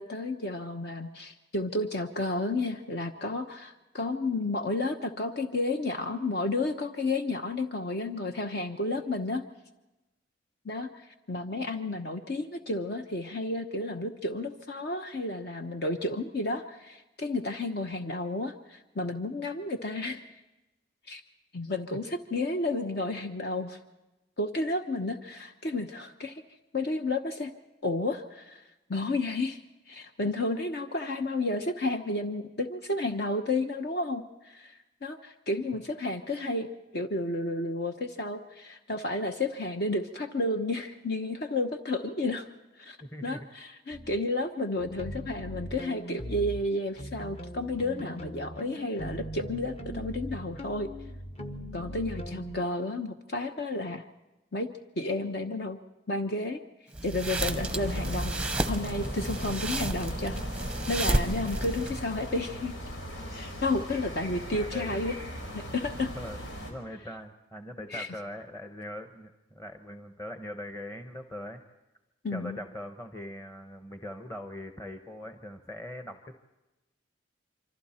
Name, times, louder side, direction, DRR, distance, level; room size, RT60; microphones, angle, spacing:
voice 1, 0.0-9.4 10.6-20.2 21.1-21.2 21.5-23.8 24.4-26.4 26.7-27.5 27.8-28.6 28.9-29.6 29.9-36.7 36.9-42.5 42.8-43.0 43.2-50.9 51.7-54.0 54.5-54.7 55.0-55.8 56.1-56.6 57.0-60.4 60.9-62.7 63.3-65.2 65.5-66.1 67.9-68.1 72.2-72.6, left 2 dB, 55° left, 6 dB, 1.0 m, -32 dB
voice 2, 43.0-43.5 64.5-65.0 66.2-71.6 72.3-76.4, left 1 dB, 15° left, 6 dB, 1.0 m, -41 dB
sound 1, 43.9-44.2 44.8-46.6 47.0-52.6, equal, 35° left, 1.2 m, -40 dB
sound 2, 56.9-62.2, right 1 dB, 5° right, 0.7 m, -31 dB
sound 3, 57.3-66.7, equal, 90° left, 4.6 m, -40 dB
27.0 x 25.0 x 4.4 m, 1.0 s
head